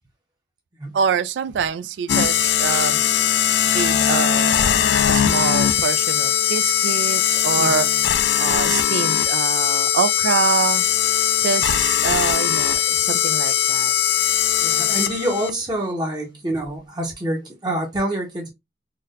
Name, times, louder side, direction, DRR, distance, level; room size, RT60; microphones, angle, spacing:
voice 1, 0.9-3.0 3.7-4.8 5.1-7.9 8.4-10.8 11.4-13.9, right 6 dB, 85° right, 0.3 m, -25 dB
sound 1, 2.1-15.5, left 10 dB, 75° left, 0.3 m, -20 dB
voice 2, 7.6-8.0 14.6-18.5, right 1 dB, 25° right, 0.7 m, -27 dB
3.9 x 2.1 x 2.5 m
head